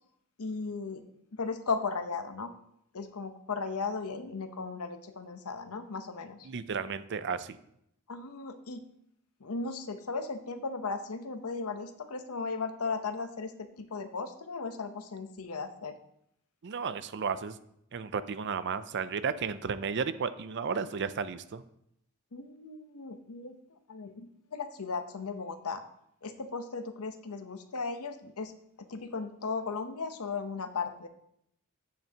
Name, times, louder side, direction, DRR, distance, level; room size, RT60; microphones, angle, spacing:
voice 1, 0.4-1.0 1.3-2.5 2.9-6.5 8.1-8.8 9.4-16.0 22.3-23.6 23.9-25.8 26.2-28.5 28.8-31.1, left 4 dB, 85° left, 8 dB, 0.9 m, -36 dB
voice 2, 6.4-7.6 16.6-17.6 17.9-21.6, right 5 dB, 55° right, 13 dB, 0.5 m, -33 dB
10.5 x 8.6 x 2.9 m, 0.75 s
head